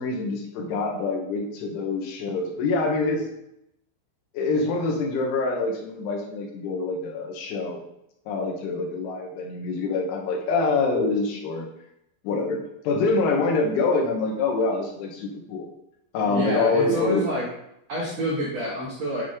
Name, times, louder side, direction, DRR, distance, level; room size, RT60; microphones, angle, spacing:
voice 1, 0.0-3.3 4.3-7.8 8.3-11.7 12.2-12.6 12.9-15.7 16.1-17.2, left 3 dB, 80° left, 0 dB, 3.7 m, -25 dB
voice 2, 16.3-17.5 17.9-19.2, right 1 dB, 75° right, -5 dB, 1.5 m, -27 dB
9.3 x 4.1 x 5.0 m, 0.80 s
omnidirectional pair, 5.6 m